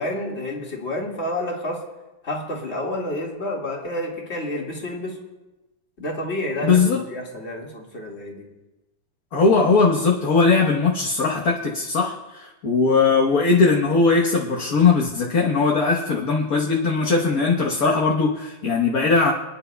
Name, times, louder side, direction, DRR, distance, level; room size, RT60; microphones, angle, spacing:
voice 1, 0.0-1.8 2.2-5.2 6.0-8.5, left 1 dB, 35° left, -2 dB, 2.1 m, -29 dB
voice 2, 6.6-7.0 9.3-19.3, left 4 dB, 50° left, -2 dB, 1.5 m, -19 dB
27.5 x 10.5 x 2.3 m, 1.0 s
omnidirectional pair, 2.1 m